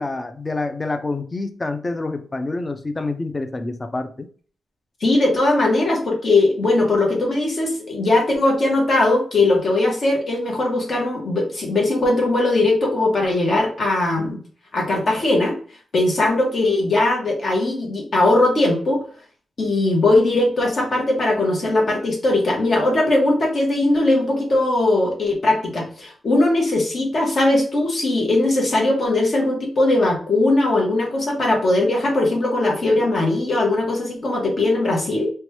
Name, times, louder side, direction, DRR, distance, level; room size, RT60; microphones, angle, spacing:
voice 1, 0.0-4.3, left 2 dB, 25° left, 8 dB, 0.3 m, -27 dB
voice 2, 5.0-14.4 14.7-15.6 15.9-19.0 19.6-35.3, left 2 dB, 50° left, -1 dB, 0.8 m, -19 dB
2.9 x 2.2 x 3.0 m, 0.43 s
wide cardioid pair, 145°, 0 cm